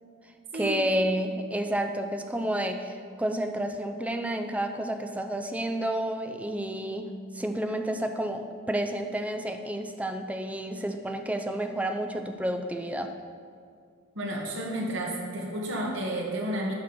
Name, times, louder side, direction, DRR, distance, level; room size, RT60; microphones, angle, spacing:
voice 1, 0.5-13.1, right 1 dB, 5° right, 5 dB, 0.5 m, -30 dB
voice 2, 14.2-16.7, right 1 dB, 65° right, -2 dB, 1.8 m, -31 dB
11.5 x 6.1 x 4.3 m, 2.3 s
head